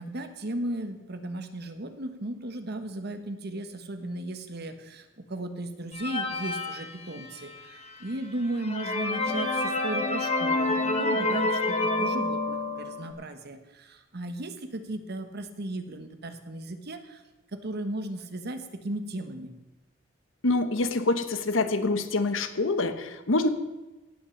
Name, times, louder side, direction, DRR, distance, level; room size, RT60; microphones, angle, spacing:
voice 1, 0.0-17.2 17.5-19.5, right 1 dB, 55° right, 8 dB, 1.2 m, -36 dB
sound 1, 5.9-7.6 8.1-8.2 8.6-13.1, left 2 dB, 35° left, 1.4 m, -28 dB
voice 2, 20.4-23.5, left 2 dB, 85° left, 10 dB, 1.1 m, -26 dB
17.0 x 6.0 x 7.2 m, 1.1 s
head